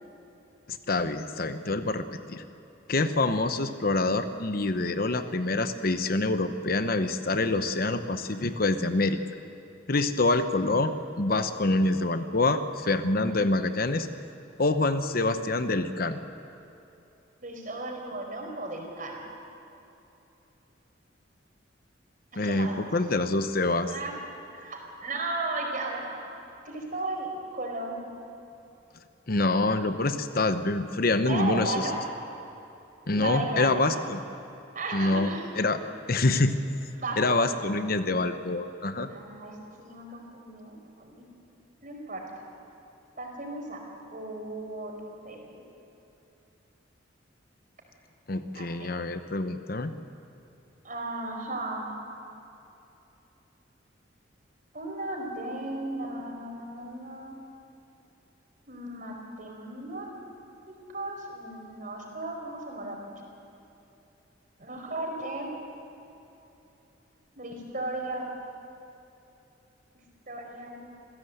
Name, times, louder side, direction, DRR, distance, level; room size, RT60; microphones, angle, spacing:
voice 1, 0.7-2.4 2.9-9.2 9.9-10.9 11.2-14.1 14.6-16.2 22.4-23.9 29.3-31.8 33.1-34.2 34.9-35.8 36.1-36.6 37.2-39.1 48.3-49.9, left 2 dB, 50° left, 9 dB, 0.9 m, -26 dB
voice 2, 17.4-19.2 22.3-22.9 23.9-24.2 24.5-26.2 26.6-28.0 31.3-32.0 33.1-33.8 34.7-35.5 36.9-37.5 39.1-41.3 41.8-42.3 43.2-43.8 44.1-44.9 45.2-45.5 48.5-48.9 50.8-51.9 54.7-57.3 58.7-60.1 60.7-63.1 64.6-65.5 67.4-68.3 69.9-70.8, right 2 dB, 45° right, 1 dB, 4.6 m, -35 dB
27.5 x 16.0 x 8.0 m, 2.9 s
head